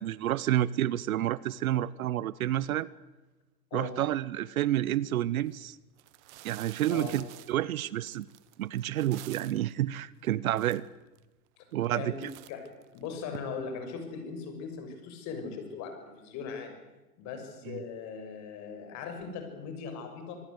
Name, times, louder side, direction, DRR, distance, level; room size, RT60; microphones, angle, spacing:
voice 1, 0.0-2.9 3.7-5.8 6.4-8.3 8.6-10.8 11.7-12.3 17.7-17.8, right 13 dB, 60° right, 20 dB, 0.9 m, -29 dB
sound 1, 5.4-5.5 6.0-9.7 10.3-10.4 10.5-11.2 11.7-12.0 12.2-13.4, right 17 dB, 45° right, 1.5 m, -49 dB
voice 2, 6.9-7.2 11.6-11.7 11.9-16.8 17.2-20.4, left 5 dB, 35° left, 6 dB, 6.5 m, -39 dB
26.0 x 19.5 x 8.1 m, 1.1 s
hypercardioid pair, 130°, 48 cm